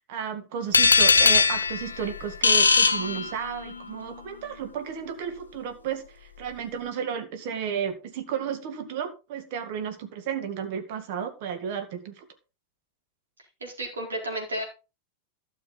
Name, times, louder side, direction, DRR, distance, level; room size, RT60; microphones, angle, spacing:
voice 1, 0.1-12.3, right 7 dB, 50° right, 7 dB, 1.9 m, -33 dB
sound 1, 0.7-3.7, left 4 dB, 75° left, 0.7 m, -20 dB
voice 2, 13.6-14.6, right 1 dB, 70° right, 0 dB, 4.3 m, -32 dB
12.5 x 6.6 x 4.0 m, 0.31 s
figure-of-eight pair, 90°, 0 cm